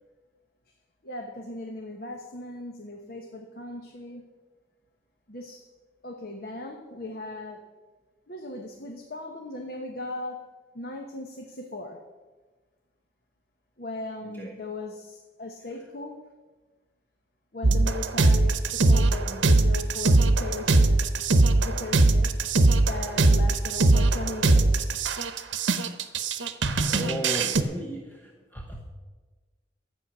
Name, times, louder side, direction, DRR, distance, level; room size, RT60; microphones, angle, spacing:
voice 1, 1.0-4.3 5.3-5.6 6.0-7.7 8.3-12.0 13.8-16.2 17.5-21.1 21.5-22.4 22.8-25.0, left 2 dB, 55° left, 2 dB, 1.1 m, -38 dB
sound 1, 17.6-27.6, right 2 dB, 85° right, 0.8 m, -21 dB
voice 2, 26.9-28.8, right 1 dB, 10° left, -1 dB, 1.1 m, -35 dB
12.0 x 8.6 x 6.1 m, 1.3 s
head